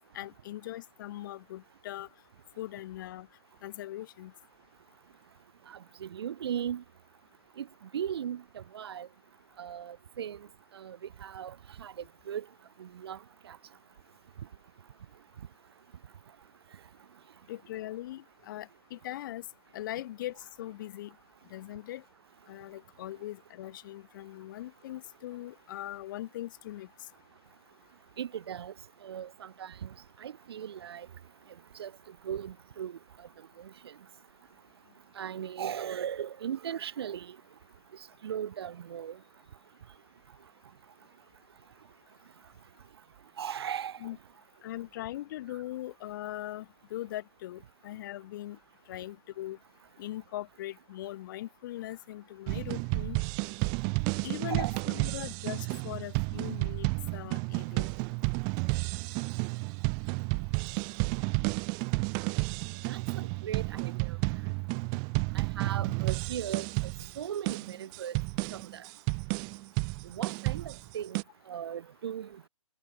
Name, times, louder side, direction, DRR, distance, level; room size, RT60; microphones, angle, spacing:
voice 1, 0.1-2.1 2.6-3.3 3.6-4.3 17.5-19.5 19.7-21.2 21.5-22.0 22.5-26.9 44.0-44.2 44.6-48.6 48.9-49.6 50.0-53.2 54.2-57.9, left 14 dB, 40° left, 5.6 m, -40 dB
voice 2, 5.7-6.8 7.6-7.7 7.9-9.1 9.6-10.5 10.7-12.5 12.8-13.2 13.4-13.6 28.2-28.7 29.0-29.9 30.2-31.1 31.8-31.9 32.2-33.0 33.6-33.7 35.2-37.4 38.2-39.2 43.4-44.0 54.5-54.7 62.9-64.2 65.3-66.7 67.2-68.2 68.5-68.8 70.0-71.2 71.5-72.5, right 9 dB, 50° right, 6.9 m, -37 dB
sound 1, 52.5-71.2, right 38 dB, 25° right, 1.3 m, -32 dB
figure-of-eight pair, 130°, 17 cm